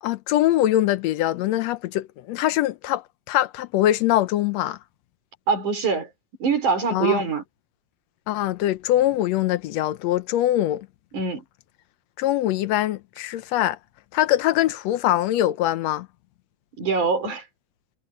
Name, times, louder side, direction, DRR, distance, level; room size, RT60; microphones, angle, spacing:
voice 1, 0.0-4.8 6.9-7.2 8.3-10.9 12.2-13.8 14.1-16.1, left 13 dB, 75° left, 1.7 m, -23 dB
voice 2, 5.5-6.1 6.4-7.4 11.1-11.4 16.8-17.5, right 5 dB, 75° right, 5.9 m, -23 dB
omnidirectional pair, 3.5 m